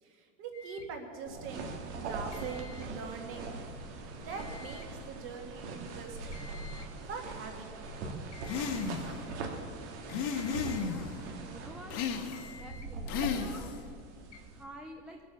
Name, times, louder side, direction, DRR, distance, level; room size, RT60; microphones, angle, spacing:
voice 1, 0.0-1.7 1.9-3.6 4.3-6.5 7.0-7.8, right 5 dB, 35° right, 3 dB, 2.0 m, -43 dB
sound 1, 0.5-1.0 2.3-3.0 4.3-5.0 6.3-7.0 8.3-9.0 10.3-11.0 12.3-13.0 14.3-14.4, left 4 dB, 75° left, 1.5 m, -52 dB
sound 2, 1.3-14.6, right 3 dB, 75° right, 2.4 m, -42 dB
sound 3, 8.4-9.2 10.1-11.1 11.9-12.6 13.1-13.9, left 6 dB, 45° left, 1.5 m, -34 dB
voice 2, 10.7-12.0 12.5-14.1 14.5-15.2, equal, 5° right, 1 dB, 0.3 m, -50 dB
21.0 x 8.8 x 7.0 m, 2.4 s
supercardioid pair, 175°, 35 cm